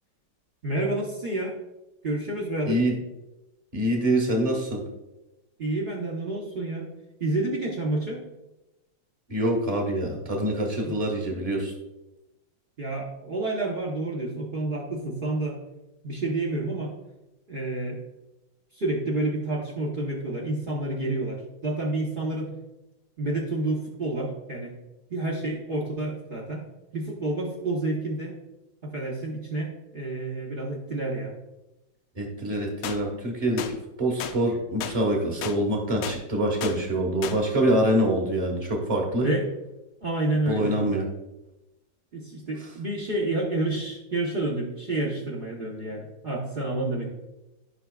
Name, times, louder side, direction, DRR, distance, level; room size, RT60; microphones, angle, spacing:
voice 1, 0.6-1.6 2.0-2.8 5.6-6.9 7.2-8.2 10.9-11.0 12.8-15.6 16.0-17.0 17.5-18.0 18.7-22.6 23.2-24.7 25.1-26.6 26.9-28.3 28.8-31.3 39.2-39.5 40.0-40.8 42.1-47.1, right 2 dB, 45° right, -1 dB, 0.7 m, -29 dB
voice 2, 2.7-3.0 3.7-4.8 9.3-11.7 32.2-39.3 40.5-41.1, right 1 dB, 20° right, 1 dB, 1.0 m, -25 dB
sound 1, 32.8-33.0 33.6-33.7 34.2-34.4 34.8-35.0 35.4-35.6 36.0-36.2 36.6-36.8 37.2-37.4, left 9 dB, 85° left, 1.5 m, -33 dB
11.5 x 5.7 x 2.3 m, 0.97 s
omnidirectional pair, 2.4 m